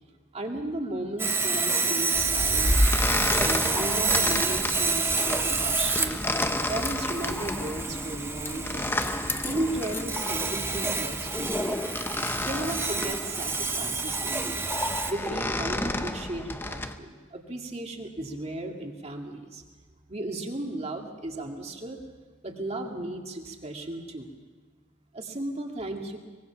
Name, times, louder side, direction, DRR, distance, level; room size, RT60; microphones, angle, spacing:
voice 1, 0.3-2.8 3.4-6.2 6.7-9.0 9.4-11.8 12.4-19.6 20.1-22.0 22.4-24.3 25.1-26.2, right 1 dB, 30° right, 3 dB, 2.1 m, -35 dB
Sawing, 1.2-15.1, right 4 dB, 10° right, 1.0 m, -29 dB
sound 1, 2.1-16.9, left 1 dB, 10° left, 0.8 m, -30 dB
23.5 x 21.0 x 5.8 m, 1.4 s
head